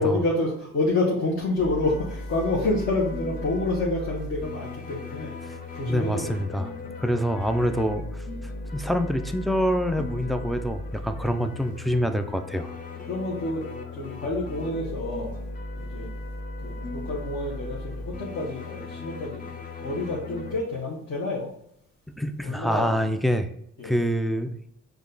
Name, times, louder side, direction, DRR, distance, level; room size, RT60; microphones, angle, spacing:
voice 1, 0.0-5.3 5.7-6.3 11.2-11.3 13.1-13.6 13.9-15.4 15.8-16.1 16.6-19.5 19.8-21.5 22.4-23.0 23.8-24.0, left 2 dB, 45° left, -4 dB, 1.1 m, -28 dB
sound 1, 1.5-20.6, left 2 dB, 30° left, 0.7 m, -37 dB
voice 2, 5.9-6.7 7.0-8.0 8.7-12.7 22.1-23.5 23.8-24.6, equal, ahead, 8 dB, 0.3 m, -26 dB
5.0 x 2.3 x 3.8 m, 0.72 s
cardioid pair, 90°, 30 cm